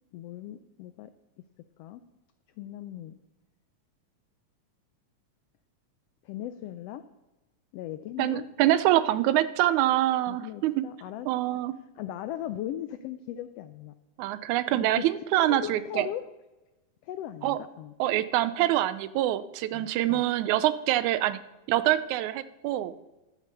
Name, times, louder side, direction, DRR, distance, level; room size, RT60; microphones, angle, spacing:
voice 1, 0.1-1.1 1.8-2.0 2.6-3.1 6.2-7.0 7.7-8.5 10.2-11.3 12.0-13.9 14.7-15.0 15.4-16.3 17.0-17.9 19.7-20.3, left 12 dB, 85° left, 11 dB, 1.4 m, -38 dB
voice 2, 8.2-10.9 11.3-11.7 14.2-16.1 17.4-17.6 18.0-21.4 21.7-22.9, right 14 dB, 85° right, 14 dB, 2.0 m, -25 dB
11.5 x 7.4 x 6.6 m, 1.1 s
omnidirectional pair, 3.4 m